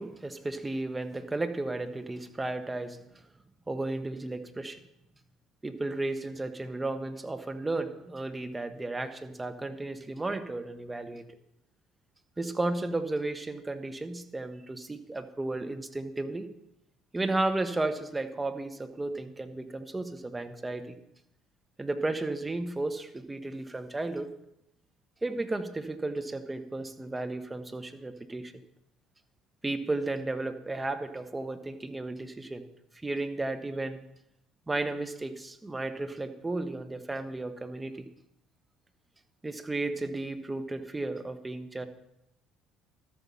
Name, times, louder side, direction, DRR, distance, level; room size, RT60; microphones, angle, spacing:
voice 1, 0.0-3.0 3.7-4.8 5.6-11.3 12.4-16.5 17.1-20.9 21.8-24.3 25.2-28.5 29.6-32.6 33.0-34.0 34.7-37.9 39.4-41.9, right 2 dB, 15° right, 7 dB, 1.4 m, -33 dB
13.0 x 8.4 x 5.8 m, 0.83 s
hypercardioid pair, 65°, 0 cm